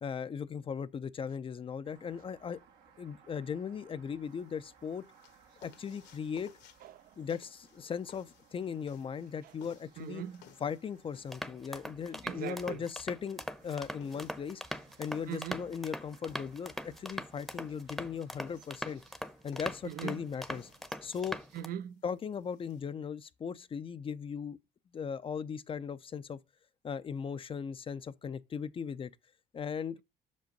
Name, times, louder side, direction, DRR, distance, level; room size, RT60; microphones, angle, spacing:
voice 1, 0.0-2.6 3.0-5.0 5.6-6.5 7.2-10.2 10.6-14.6 15.0-19.0 19.4-20.7 21.0-21.4 22.0-24.6 24.9-26.4 26.8-29.1 29.5-30.0, left 7 dB, 30° left, 0.5 m, -38 dB
sound 1, 1.8-21.8, right 6 dB, 90° right, 1.8 m, -64 dB
sound 2, 4.2-22.8, left 9 dB, 80° left, 1.4 m, -61 dB
voice 2, 6.8-7.1 10.0-10.4 12.2-12.8 15.3-15.7 19.8-20.2 21.5-22.0, right 10 dB, 60° right, 0.5 m, -40 dB
sound 3, 11.3-21.7, equal, ahead, 0.8 m, -41 dB
6.1 x 5.2 x 5.2 m
cardioid pair, 110°, 17 cm